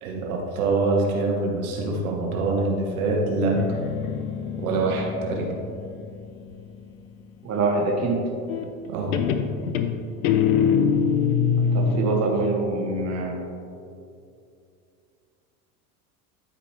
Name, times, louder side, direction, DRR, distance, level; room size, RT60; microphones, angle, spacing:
voice 1, 0.0-3.6 4.6-5.6 8.9-9.3, right 3 dB, 70° right, 0 dB, 1.5 m, -25 dB
Guitar, 3.4-7.0 8.5-8.9 9.1-12.1, left 7 dB, 70° left, 0.8 m, -24 dB
voice 2, 7.4-8.2 11.7-13.4, right 3 dB, 35° right, 1 dB, 1.3 m, -24 dB
12.0 x 5.1 x 3.3 m, 2.5 s
hypercardioid pair, 85°, 44 cm